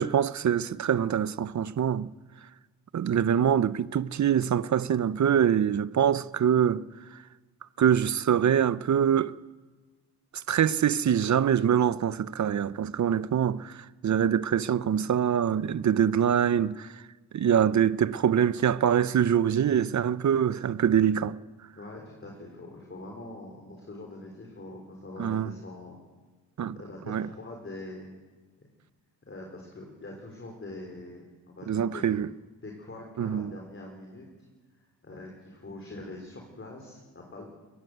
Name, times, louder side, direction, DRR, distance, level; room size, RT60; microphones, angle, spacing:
voice 1, 0.0-2.1 2.9-6.8 7.8-9.3 10.5-16.9 17.3-21.4 25.2-25.5 26.6-26.8 27.1-27.3 31.7-32.3 33.2-33.5, right 8 dB, 45° right, 0.7 m, -24 dB
voice 2, 21.8-26.0 26.7-28.1 28.6-28.7 29.3-32.0 32.6-34.3 34.7-37.6, left 2 dB, 30° left, 4.2 m, -43 dB
22.0 x 16.0 x 8.1 m
cardioid pair, 105°, 41 cm